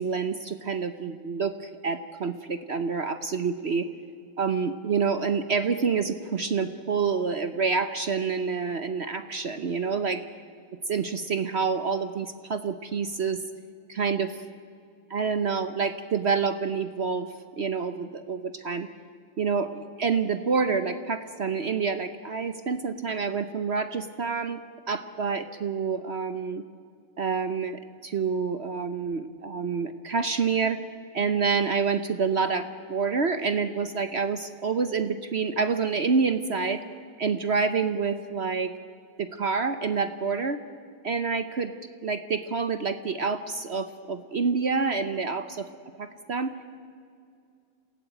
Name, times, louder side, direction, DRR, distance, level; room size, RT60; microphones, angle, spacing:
voice 1, 0.0-3.9 4.4-10.2 10.9-13.4 13.9-14.4 15.1-17.3 17.6-18.9 19.4-26.6 27.2-30.8 31.1-36.8 37.2-38.7 39.2-40.6 41.0-41.7 42.0-45.7 46.0-46.5, right 5 dB, 65° right, 10 dB, 0.6 m, -27 dB
27.5 x 17.0 x 9.0 m, 2.4 s
omnidirectional pair, 2.4 m